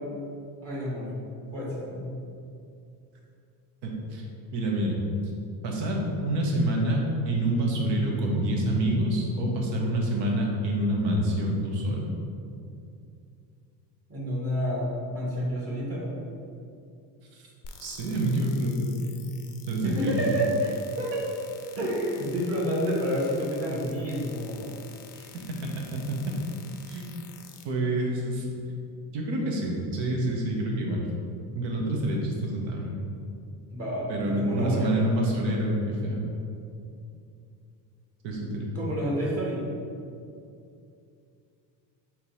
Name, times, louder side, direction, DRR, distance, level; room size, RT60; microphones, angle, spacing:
voice 1, 0.6-1.2 1.5-2.1 14.1-16.1 19.8-21.2 21.8-24.7 25.1-25.3 33.7-35.0 38.7-39.6, equal, 30° right, -6 dB, 1.4 m, -29 dB
voice 2, 3.8-4.3 4.5-4.9 5.6-12.1 17.3-17.4 17.8-18.9 19.7-20.3 26.1-26.4 26.9-27.0 27.6-28.5 29.1-31.0 31.5-32.9 34.1-36.2 38.2-38.7, right 1 dB, 70° right, -1 dB, 1.1 m, -27 dB
sound 1, 17.6-27.6, left 6 dB, 45° left, 0.5 m, -49 dB
3.7 x 2.9 x 4.6 m, 2.5 s
cardioid pair, 110°, 45 cm